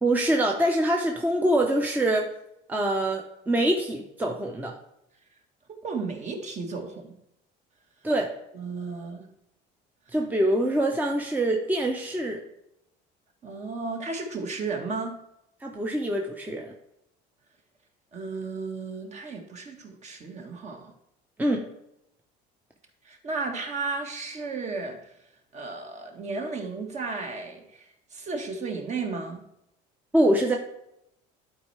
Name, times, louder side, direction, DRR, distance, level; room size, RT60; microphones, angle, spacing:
voice 1, 0.0-2.3 2.7-4.7 8.0-8.3 10.1-12.4 15.6-16.7 21.4-21.6 30.1-30.6, right 1 dB, 10° right, 1 dB, 0.8 m, -24 dB
voice 2, 5.8-7.1 8.5-9.3 13.4-15.2 18.1-20.9 23.0-25.1 25.5-29.4, right 4 dB, 40° right, 3 dB, 1.5 m, -34 dB
11.5 x 4.5 x 3.3 m, 0.81 s
cardioid pair, 125°, 19 cm